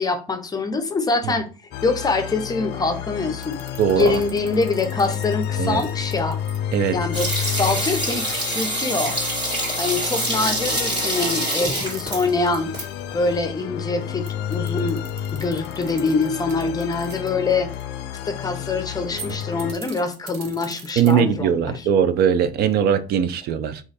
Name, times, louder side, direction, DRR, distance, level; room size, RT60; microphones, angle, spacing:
voice 1, 0.0-1.5 1.8-3.6 3.9-6.4 6.9-9.2 9.8-12.8 13.1-15.0 15.3-17.7 18.3-21.9, left 3 dB, 20° left, 0.6 m, -24 dB
sound 1, 1.7-19.7, left 9 dB, 80° left, 0.4 m, -31 dB
sound 2, 3.4-6.9 9.4-12.5 12.8-12.9 14.0-17.8 19.0-21.4, right 6 dB, 90° right, 0.7 m, -42 dB
voice 2, 3.8-4.2 5.6-5.8 6.7-7.0 21.0-23.8, right 8 dB, 70° right, 0.4 m, -20 dB
sound 3, 7.1-12.8 13.1-13.2, right 1 dB, 30° right, 2.0 m, -25 dB
3.0 x 2.4 x 4.1 m
cardioid pair, 110°, 17 cm